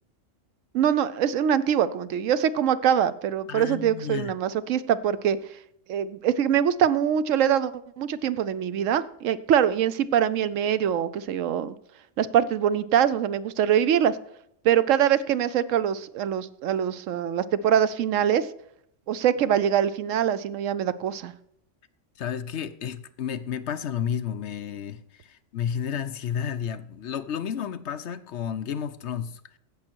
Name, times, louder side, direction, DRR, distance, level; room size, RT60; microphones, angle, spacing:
voice 1, 0.7-5.6 5.9-11.7 12.2-14.2 14.6-18.5 19.1-21.3, right 9 dB, 90° right, 1.0 m, -23 dB
voice 2, 3.5-4.3 22.2-29.4, left 8 dB, 65° left, 1.0 m, -31 dB
16.0 x 6.3 x 4.5 m
omnidirectional pair, 1.3 m